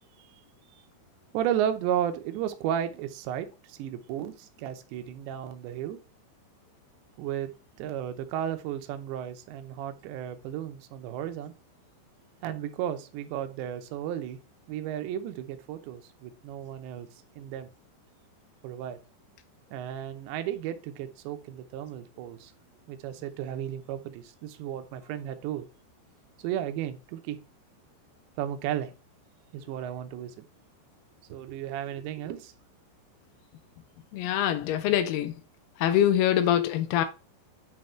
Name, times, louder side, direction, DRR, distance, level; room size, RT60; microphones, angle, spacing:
voice 1, 1.3-6.0 7.2-7.5 7.8-11.5 12.4-14.4 14.7-17.1 17.4-17.7 18.6-19.0 19.7-22.5 22.9-25.6 26.4-27.4 28.4-28.9 29.5-30.3 31.3-32.5, right 10 dB, 80° right, 3.1 m, -33 dB
voice 2, 34.1-35.3 35.8-37.0, left 11 dB, 80° left, 2.4 m, -24 dB
8.6 x 4.0 x 4.4 m
omnidirectional pair, 5.2 m